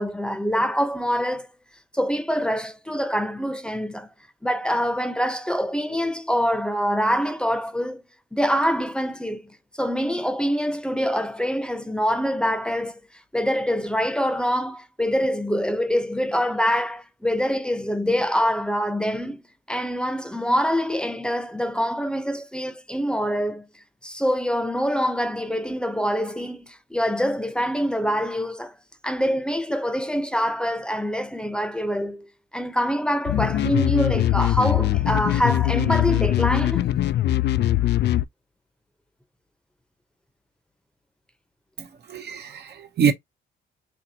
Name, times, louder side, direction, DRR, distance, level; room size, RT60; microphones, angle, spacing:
voice 1, 0.0-1.5 1.9-4.1 4.4-8.0 8.3-13.0 13.3-19.4 19.7-23.7 24.0-28.7 29.0-32.3 32.5-37.0, equal, 5° left, 0.7 m, -25 dB
sound 1, 33.3-38.2, left 13 dB, 60° left, 0.4 m, -21 dB
voice 2, 41.8-43.1, right 7 dB, 60° right, 0.8 m, -25 dB
4.3 x 2.6 x 2.7 m
cardioid pair, 90°, 20 cm